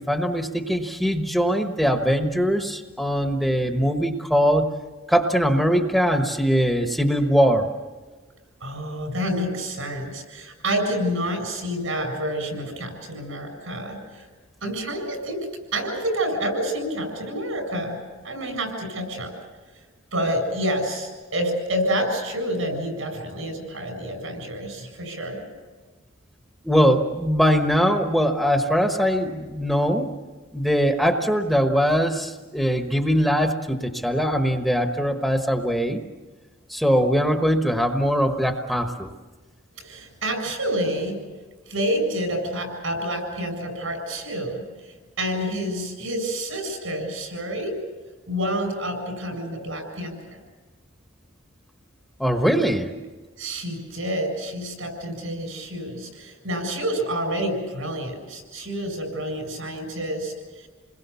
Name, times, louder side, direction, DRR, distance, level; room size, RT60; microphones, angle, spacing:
voice 1, 0.0-4.6 5.1-7.7 26.6-30.1 30.5-36.0 36.7-39.1 52.2-52.9, equal, ahead, 4 dB, 1.2 m, -21 dB
voice 2, 8.6-14.3 14.6-15.5 15.7-18.0 18.2-19.3 20.1-25.4 39.8-41.2 41.7-44.6 45.2-47.8 48.3-50.4 53.4-60.7, equal, 80° right, 5 dB, 7.5 m, -28 dB
29.0 x 21.0 x 7.0 m, 1.3 s
head